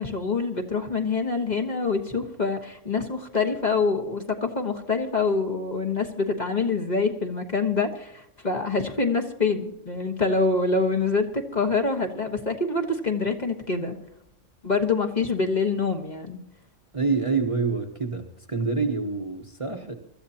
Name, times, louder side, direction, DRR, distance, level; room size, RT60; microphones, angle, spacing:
voice 1, 0.0-14.0 14.6-16.4, left 4 dB, 35° left, 4 dB, 1.4 m, -25 dB
voice 2, 16.9-19.9, right 4 dB, 25° right, 3 dB, 1.1 m, -27 dB
24.0 x 13.5 x 2.9 m, 0.76 s
omnidirectional pair, 1.3 m